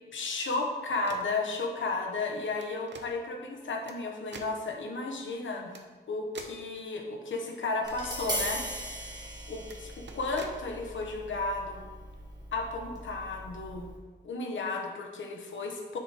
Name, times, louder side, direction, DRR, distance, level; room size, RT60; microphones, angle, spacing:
voice 1, 0.1-5.7 6.1-9.1 9.5-11.8 12.5-13.9 14.2-16.0, left 3 dB, 85° left, 2 dB, 1.0 m, -34 dB
sound 1, 0.9-1.4 2.5-3.1 3.9-4.0 4.3-4.5 5.7-5.8 6.3-6.6 7.9-8.0 8.3-8.6 9.6-9.8 10.1-10.6, right 4 dB, 65° right, 0.7 m, -45 dB
Tap, 7.8-14.0, equal, 20° right, 1.8 m, -39 dB
10.0 x 5.1 x 3.0 m, 1.4 s
wide cardioid pair, 120°, 20 cm